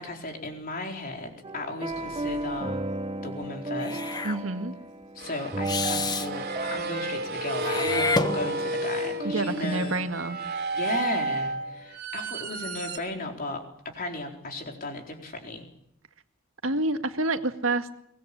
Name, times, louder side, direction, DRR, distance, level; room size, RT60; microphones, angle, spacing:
voice 1, 0.0-2.8 3.2-4.0 5.1-10.0 10.7-15.7, left 2 dB, 45° left, 3 dB, 4.3 m, -35 dB
sound 1, 1.4-10.9, right 2 dB, 25° right, 0.9 m, -35 dB
sound 2, 1.9-2.7 4.1-4.2 5.2-13.0, right 2 dB, 50° right, 3.1 m, -32 dB
Meow / Hiss, 3.8-4.4 5.7-6.3 7.6-8.9, left 3 dB, 20° left, 1.1 m, -29 dB
voice 2, 4.2-4.7 9.3-10.4 16.6-17.9, right 2 dB, 70° right, 7 dB, 1.9 m, -28 dB
23.5 x 20.0 x 8.6 m, 0.72 s
head